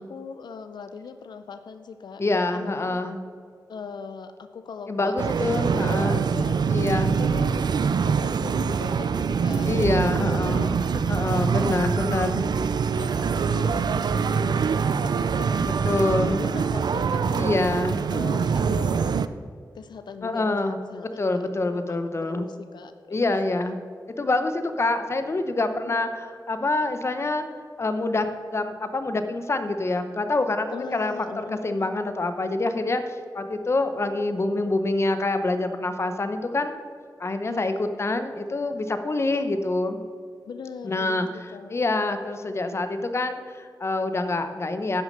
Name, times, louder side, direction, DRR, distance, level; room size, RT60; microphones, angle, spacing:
voice 1, 0.0-3.0 3.7-6.6 7.1-12.5 13.0-15.7 16.1-17.5 18.1-19.2 19.7-23.8 25.7-26.1 30.7-32.0 37.5-37.8 40.5-41.8, left 5 dB, 85° left, 9 dB, 0.5 m, -40 dB
voice 2, 2.2-3.2 4.9-6.2 6.7-7.1 9.7-10.7 11.1-12.4 15.8-16.4 17.4-18.0 20.2-20.8 21.2-22.5 23.1-23.8 24.2-27.4 27.8-36.7 37.2-40.0 40.8-41.3 41.7-45.0, left 2 dB, 40° left, 8 dB, 0.9 m, -26 dB
sound 1, 5.2-19.3, right 6 dB, 75° right, 0.4 m, -24 dB
10.5 x 6.5 x 6.6 m, 2.1 s
wide cardioid pair, 105°, 7 cm